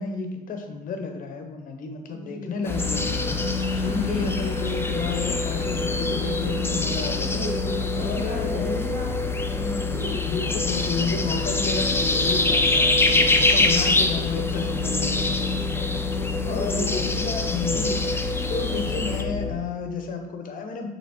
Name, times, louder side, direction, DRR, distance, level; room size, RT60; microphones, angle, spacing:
voice 1, 0.0-3.3 3.7-7.5 7.9-8.9 10.2-18.0 18.5-20.9, left 4 dB, 55° left, 5 dB, 0.8 m, -32 dB
voice 2, 2.1-2.6 3.9-4.3 7.2-9.1 9.4-10.2 13.3-13.7 16.4-17.0, right 1 dB, 80° right, -8 dB, 1.3 m, -34 dB
sound 1, 2.6-19.2, left 2 dB, 15° left, 0.5 m, -26 dB
sound 2, 2.7-19.5, left 4 dB, 35° left, 1.2 m, -28 dB
6.0 x 3.0 x 3.0 m, 1.1 s
hypercardioid pair, 55°, 17 cm